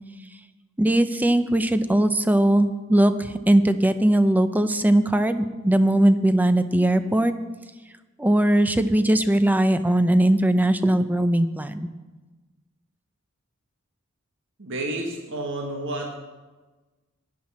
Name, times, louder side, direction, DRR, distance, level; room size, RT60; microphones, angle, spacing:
voice 1, 0.8-7.3 8.2-11.9, right 1 dB, 10° right, 10 dB, 0.6 m, -20 dB
voice 2, 14.6-16.1, right 2 dB, 60° right, 1 dB, 1.5 m, -30 dB
16.5 x 10.5 x 4.3 m, 1.2 s
head